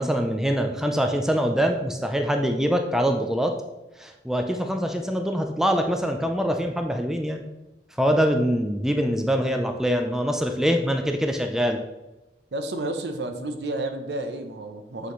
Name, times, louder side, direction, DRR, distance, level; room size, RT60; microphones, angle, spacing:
voice 1, 0.0-3.5 4.0-7.4 8.0-11.8, equal, 5° right, 4 dB, 0.4 m, -24 dB
voice 2, 12.5-15.1, right 2 dB, 70° right, 6 dB, 0.7 m, -31 dB
7.9 x 4.1 x 3.1 m, 1.0 s
head